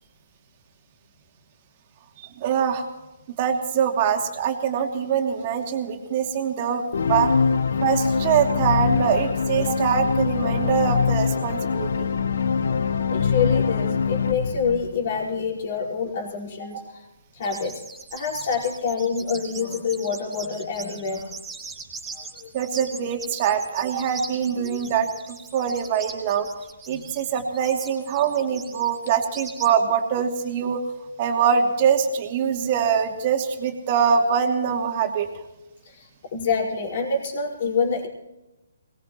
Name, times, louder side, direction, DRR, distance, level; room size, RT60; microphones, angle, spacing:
voice 1, 2.4-2.8 3.4-6.8 7.1-7.3 7.8-12.1 16.7-16.8 22.5-25.1 25.5-26.5 26.9-30.8 31.2-35.3, right 7 dB, 35° right, 3 dB, 2.8 m, -23 dB
sound 1, 6.9-15.4, left 6 dB, 60° left, 0.9 m, -23 dB
voice 2, 13.1-17.0 17.3-17.8 18.1-21.3 22.1-22.5 24.6-24.9 26.9-27.1 35.8-38.1, left 5 dB, 45° left, -1 dB, 4.9 m, -27 dB
sound 2, 17.4-29.7, right 4 dB, 10° right, 4.4 m, -40 dB
23.0 x 20.5 x 3.0 m, 0.97 s
figure-of-eight pair, 135°, 0 cm